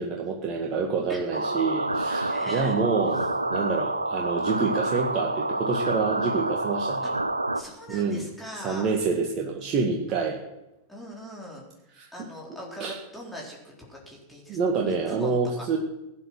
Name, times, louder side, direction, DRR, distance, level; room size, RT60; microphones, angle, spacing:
voice 1, 0.0-7.0 7.9-8.2 8.6-10.4 12.0-12.1 12.8-12.9 14.5-15.8, right 4 dB, 35° right, 1 dB, 1.9 m, -27 dB
voice 2, 1.1-1.4 2.3-2.8 3.1-3.3 7.5-8.9 10.9-11.6 12.1-14.6 14.9-15.8, equal, 5° left, -4 dB, 4.0 m, -41 dB
sound 1, 1.3-7.6, right 2 dB, 85° right, 0.8 m, -28 dB
17.5 x 9.8 x 6.4 m, 0.91 s
figure-of-eight pair, 90°, 0 cm